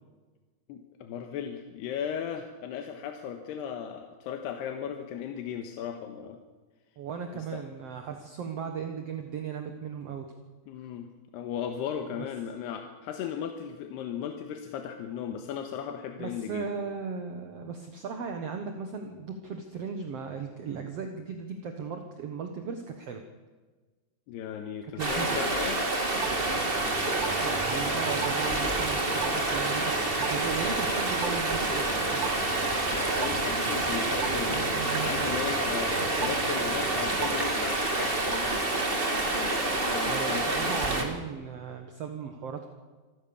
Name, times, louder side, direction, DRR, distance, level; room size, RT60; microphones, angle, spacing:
voice 1, 0.7-6.4 7.3-7.6 10.7-11.1 11.3-16.7 24.3-25.8 32.9-38.6 39.4-40.8, left 8 dB, 90° left, 5 dB, 3.3 m, -36 dB
voice 2, 7.0-10.3 16.2-23.2 25.0-25.4 27.4-32.3 40.1-42.7, right 6 dB, 55° right, 5 dB, 1.8 m, -37 dB
Stream, 25.0-41.0, right 2 dB, 20° right, 1.5 m, -28 dB
sound 1, 26.1-37.5, right 11 dB, 80° right, 1.6 m, -40 dB
26.5 x 15.0 x 7.1 m, 1.3 s
omnidirectional pair, 4.7 m